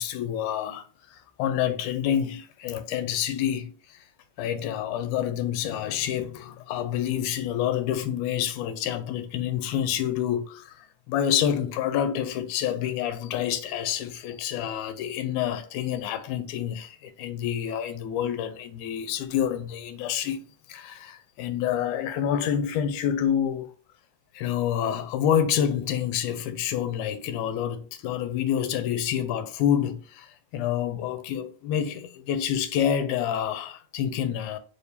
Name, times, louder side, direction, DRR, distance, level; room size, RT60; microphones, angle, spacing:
voice 1, 0.0-3.7 4.4-10.8 11.1-20.4 20.7-23.7 24.3-34.6, left 9 dB, 85° left, 2.0 m, -28 dB
4.4 x 3.5 x 2.7 m
omnidirectional pair, 3.6 m